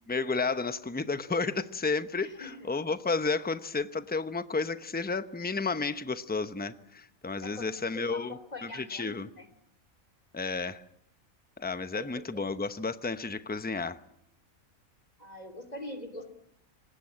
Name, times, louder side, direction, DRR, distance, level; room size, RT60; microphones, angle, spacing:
voice 1, 0.1-9.3 10.3-10.8 11.6-14.0, left 4 dB, 10° left, 0.7 m, -32 dB
voice 2, 2.2-2.7 7.4-9.5 11.9-12.4 15.2-16.3, left 1 dB, 30° left, 2.9 m, -43 dB
25.0 x 19.5 x 8.7 m
omnidirectional pair, 1.5 m